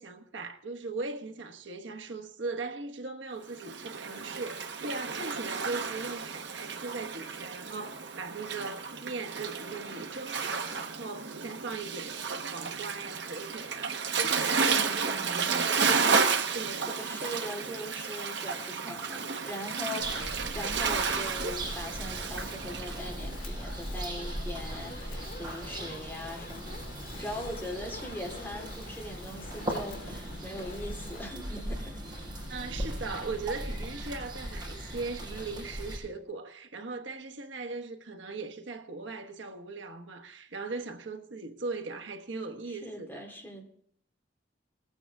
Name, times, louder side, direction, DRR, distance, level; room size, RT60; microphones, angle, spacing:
voice 1, 0.0-15.7 16.5-16.9 32.5-43.2, right 3 dB, 85° right, 1.2 m, -39 dB
Waves surf, 3.5-23.0, right 5 dB, 65° right, 1.1 m, -32 dB
voice 2, 14.6-15.5 16.9-26.8 27.2-32.0 42.6-43.7, left 1 dB, 10° left, 2.5 m, -41 dB
Fire, 19.5-31.3, left 2 dB, 50° left, 2.0 m, -48 dB
sound 1, 20.0-36.0, right 1 dB, 25° right, 5.4 m, -39 dB
20.5 x 8.9 x 3.5 m
head